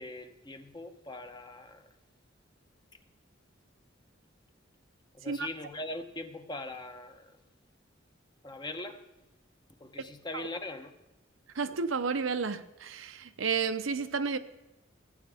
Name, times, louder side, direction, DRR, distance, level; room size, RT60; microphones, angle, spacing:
voice 1, 0.0-1.9 5.1-7.4 8.4-9.0 9.8-11.0, left 2 dB, 20° left, 0.8 m, -41 dB
voice 2, 11.5-14.4, right 5 dB, 85° right, 0.7 m, -31 dB
16.0 x 9.2 x 3.5 m
head